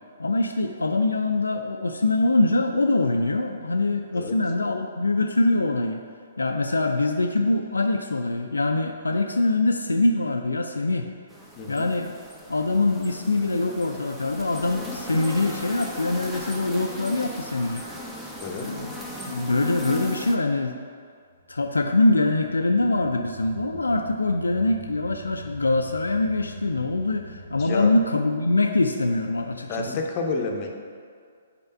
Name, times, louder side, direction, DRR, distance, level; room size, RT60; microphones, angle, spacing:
voice 1, 0.2-6.0 6.4-11.1 11.7-12.1 12.5-17.8 18.5-19.0 19.3-20.8 21.5-30.0, left 2 dB, 75° left, 4 dB, 0.3 m, -24 dB
sound 1, 11.3-20.4, left 1 dB, 5° right, 0.6 m, -37 dB
voice 2, 11.5-11.9 18.4-18.7 27.6-27.9 29.7-30.7, left 3 dB, 30° left, 2 dB, 0.7 m, -29 dB
sound 2, 21.3-28.0, right 1 dB, 70° right, 1.4 m, -44 dB
5.5 x 4.3 x 5.3 m, 2.1 s
figure-of-eight pair, 125°, 0 cm